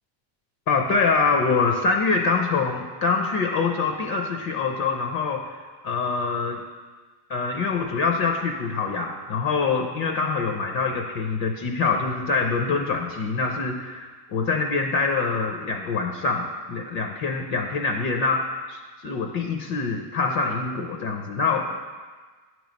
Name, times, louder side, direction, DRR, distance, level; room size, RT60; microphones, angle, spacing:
voice 1, 0.7-5.6 5.8-6.6 7.3-18.4 18.7-21.8, left 4 dB, 55° left, 3 dB, 0.7 m, -25 dB
8.6 x 3.1 x 5.2 m, 1.4 s
cardioid pair, 155°, 43 cm